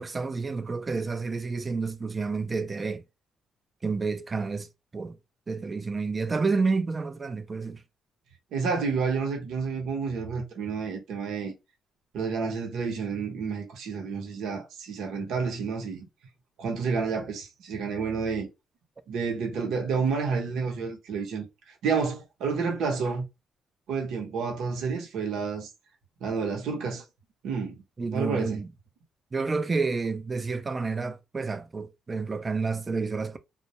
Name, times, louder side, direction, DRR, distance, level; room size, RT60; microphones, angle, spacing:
voice 1, 0.0-3.0 3.8-4.7 4.9-5.2 5.5-7.8 28.0-28.7 29.3-33.4, right 4 dB, 30° right, 0.4 m, -29 dB
voice 2, 8.5-11.5 12.1-16.1 16.6-18.5 19.1-21.4 21.8-23.2 23.9-25.7 26.2-27.0 27.4-27.7 28.1-28.6, right 5 dB, 80° right, 0.8 m, -30 dB
2.2 x 2.1 x 2.8 m
cardioid pair, 90°, 0 cm